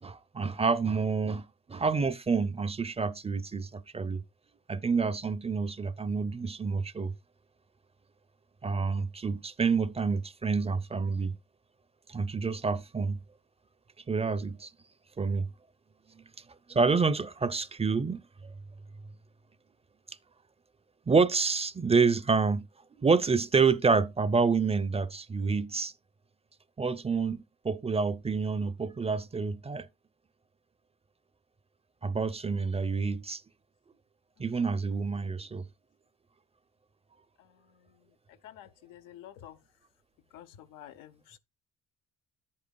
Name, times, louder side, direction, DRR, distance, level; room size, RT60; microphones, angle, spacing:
voice 1, 0.0-4.2 4.7-7.1 8.6-11.3 12.1-13.2 14.1-14.7 15.2-15.5 16.7-18.2 21.1-22.7 23.0-25.9 26.8-29.9 32.0-33.4 34.4-35.6, right 4 dB, 20° right, 0.6 m, -28 dB
voice 2, 38.4-39.5 40.3-41.4, left 11 dB, 85° left, 0.8 m, -49 dB
10.0 x 8.6 x 2.3 m
supercardioid pair, 80°, 31 cm